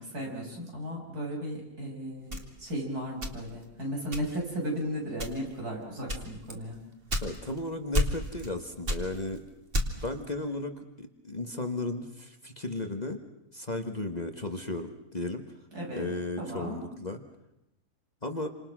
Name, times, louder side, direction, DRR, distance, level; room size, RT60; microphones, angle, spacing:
voice 1, 0.0-6.8 15.7-16.1 16.4-16.8, equal, 75° right, -1 dB, 7.4 m, -35 dB
sound 1, 2.3-3.7 4.1-4.6 5.1-5.6 6.1-7.6 7.9-8.5 8.8-10.2, equal, 35° right, 2.6 m, -31 dB
voice 2, 7.2-9.4 10.0-13.2 13.5-15.4 15.9-17.2 18.2-18.5, left 2 dB, 25° left, 6 dB, 1.5 m, -35 dB
29.5 x 26.5 x 6.2 m, 0.87 s
omnidirectional pair, 1.7 m